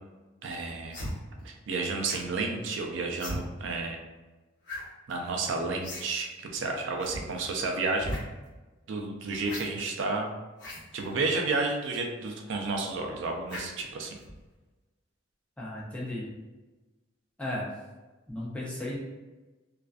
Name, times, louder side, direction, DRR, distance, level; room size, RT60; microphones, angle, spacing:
voice 1, 0.4-1.0 1.4-4.0 5.1-8.1 8.9-10.3 10.9-14.2, right 3 dB, 65° right, 2 dB, 0.4 m, -31 dB
sound 1, 0.9-1.1 2.1-2.3 3.2-3.4 4.7-4.8 5.1-5.2 5.8-6.1 6.3-6.4 7.0-7.2 7.9-8.2 9.4-9.6 10.6-10.8 11.6-11.8 13.5-13.8 14.2-14.4, left 1 dB, 55° left, 0.9 m, -37 dB
voice 2, 15.6-16.3 17.4-17.7 18.3-19.0, left 1 dB, 5° left, -6 dB, 0.4 m, -35 dB
2.4 x 2.2 x 2.3 m, 1.2 s
head